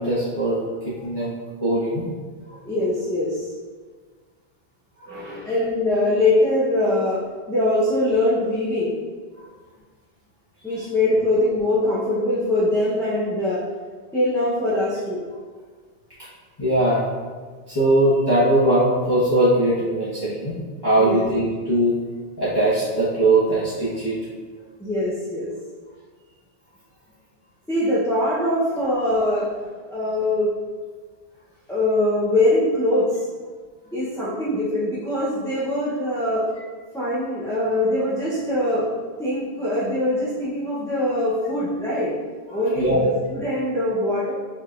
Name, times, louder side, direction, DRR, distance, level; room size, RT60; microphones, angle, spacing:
voice 1, 0.0-1.3 1.6-2.1 2.5-2.6 5.0-5.4 16.6-17.0 17.7-22.0 22.4-24.2 42.5-43.0, right 1 dB, 25° left, -12 dB, 1.2 m, -21 dB
voice 2, 2.6-3.5 5.1-7.2 7.5-9.0 10.6-13.6 14.1-15.2 21.0-21.3 24.8-25.5 27.7-29.5 29.9-30.5 31.7-33.2 33.9-36.5 36.9-38.9 39.2-42.1 42.5-44.3, left 1 dB, 5° left, -10 dB, 0.7 m, -22 dB
5.3 x 3.5 x 2.5 m, 1.5 s
omnidirectional pair, 1.0 m